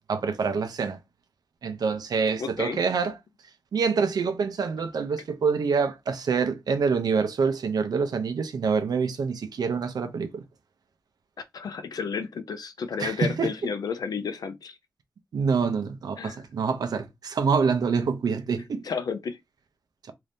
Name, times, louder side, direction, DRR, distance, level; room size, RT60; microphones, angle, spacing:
voice 1, 0.1-1.0 1.6-3.2 3.7-10.4 13.0-13.5 15.3-18.9, right 5 dB, 75° right, 0.6 m, -26 dB
voice 2, 2.4-2.8 11.5-14.8 16.2-16.4 18.8-19.4, left 6 dB, 75° left, 0.5 m, -32 dB
2.7 x 2.6 x 3.4 m
cardioid pair, 70°, 7 cm